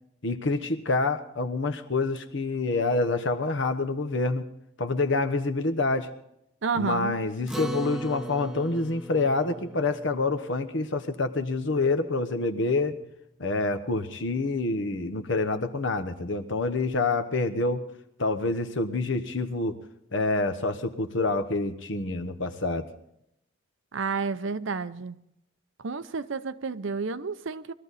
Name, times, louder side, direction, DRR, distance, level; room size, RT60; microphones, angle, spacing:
voice 1, 0.2-4.5 4.8-6.1 6.7-13.0 13.4-17.8 18.2-19.8 20.1-22.9, left 3 dB, 65° left, 1.1 m, -27 dB
voice 2, 6.6-7.1 23.9-25.2 25.8-27.7, right 4 dB, 65° right, 0.6 m, -30 dB
Acoustic guitar, 7.5-12.2, right 2 dB, ahead, 0.6 m, -40 dB
21.0 x 13.0 x 4.1 m
head